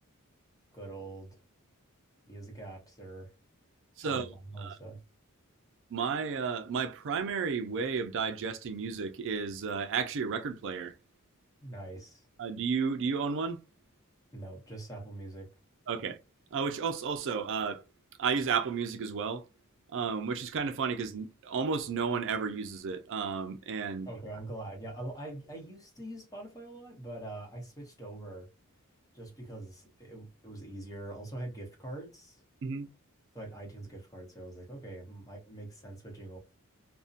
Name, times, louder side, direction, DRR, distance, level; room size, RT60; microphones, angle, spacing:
voice 1, 0.7-1.4 2.3-3.3 4.0-5.0 11.6-12.3 14.3-15.5 24.1-28.5 29.1-32.4 33.3-36.4, right 2 dB, 15° left, 0.9 m, -44 dB
voice 2, 4.0-4.8 5.9-10.9 12.4-13.6 15.9-16.2 16.5-17.8 18.2-19.4 19.9-24.1 32.6-32.9, right 5 dB, 60° right, 0.4 m, -32 dB
2.6 x 2.1 x 2.4 m
head